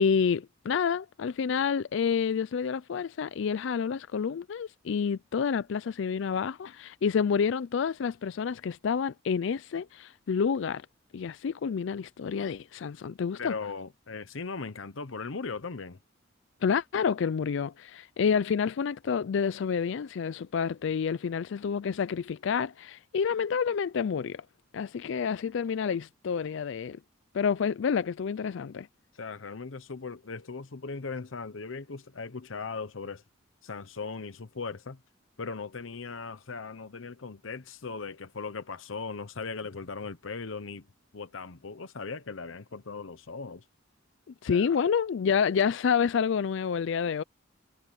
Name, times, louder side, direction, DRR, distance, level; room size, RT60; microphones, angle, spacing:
voice 1, 0.0-10.9 11.1-13.5 16.6-24.5 24.7-27.0 27.3-28.9 44.4-47.2, left 6 dB, 65° left, 0.4 m, -28 dB
voice 2, 13.4-16.0 29.1-33.2 33.6-35.0 35.4-40.9 41.1-43.6 44.5-44.8, left 4 dB, 85° left, 0.9 m, -38 dB
head